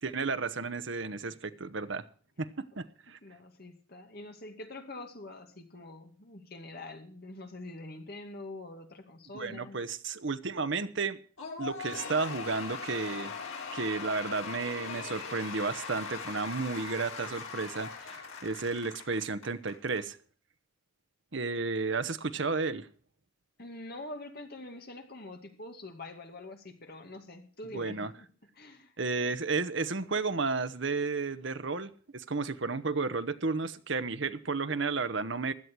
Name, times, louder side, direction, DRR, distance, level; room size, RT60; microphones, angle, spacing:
voice 1, 0.0-2.0 2.4-3.2 9.3-11.2 11.6-13.3 13.7-20.2 21.3-22.9 27.7-28.1 29.0-35.5, right 4 dB, 55° right, 0.9 m, -32 dB
voice 2, 3.2-9.8 23.6-28.3 28.5-28.9, left 2 dB, 45° left, 2.3 m, -45 dB
Cheering / Applause / Crowd, 11.4-20.0, left 5 dB, 80° left, 4.4 m, -40 dB
16.5 x 11.5 x 4.6 m
head